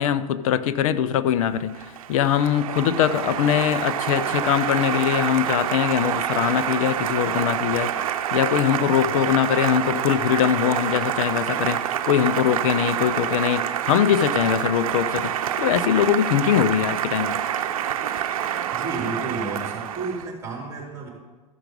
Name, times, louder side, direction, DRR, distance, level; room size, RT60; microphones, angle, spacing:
voice 1, 0.0-17.4, left 10 dB, 65° left, 15 dB, 0.7 m, -22 dB
Applause, 1.4-20.3, right 10 dB, 70° right, 0.8 m, -27 dB
voice 2, 18.7-21.1, right 3 dB, 15° right, -3 dB, 4.2 m, -31 dB
14.0 x 6.0 x 5.2 m, 1.2 s
hypercardioid pair, 110°, 18 cm